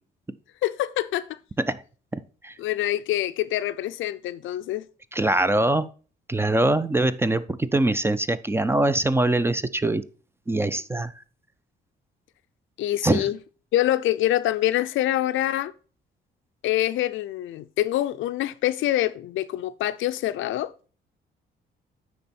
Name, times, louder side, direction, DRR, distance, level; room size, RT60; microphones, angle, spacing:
voice 1, 0.6-1.4 2.6-4.9 12.8-13.4 13.7-15.7 16.6-20.7, left 14 dB, 75° left, 0.4 m, -25 dB
voice 2, 2.1-2.6 5.1-5.9 6.3-10.0 10.5-11.1 13.0-13.3, right 2 dB, 10° right, 0.4 m, -23 dB
9.4 x 3.5 x 4.1 m
cardioid pair, 90°, 20 cm